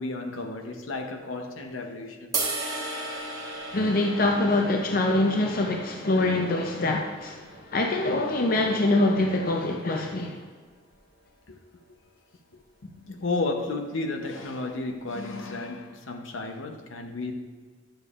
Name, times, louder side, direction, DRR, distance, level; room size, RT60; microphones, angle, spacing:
voice 1, 0.0-2.3 11.5-11.6 12.8-17.3, left 3 dB, 75° left, 0.8 m, -33 dB
sound 1, 2.3-8.6, right 3 dB, 20° right, 1.1 m, -36 dB
voice 2, 3.7-10.4, left 2 dB, 45° left, 0.6 m, -24 dB
10.0 x 6.9 x 2.5 m
head